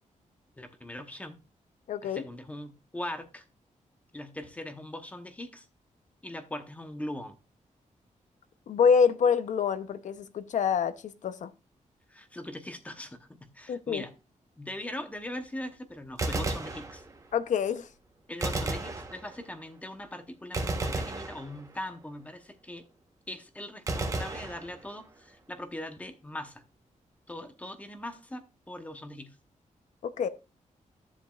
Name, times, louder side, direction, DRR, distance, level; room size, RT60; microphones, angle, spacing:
voice 1, 0.6-1.4 2.0-3.4 4.1-5.6 6.2-7.4 12.1-14.1 14.6-17.0 18.3-22.9 23.3-26.6 27.3-29.3, left 1 dB, 10° left, 0.9 m, -40 dB
voice 2, 1.9-2.2 8.7-11.5 13.7-14.0 17.3-17.9 30.0-30.3, left 6 dB, 70° left, 0.7 m, -26 dB
Gunshot gunfire, 16.1-17.4 18.4-19.6 20.5-22.0 23.9-25.2, right 2 dB, 25° right, 1.1 m, -34 dB
13.5 x 7.3 x 2.4 m
wide cardioid pair, 180°, 13 cm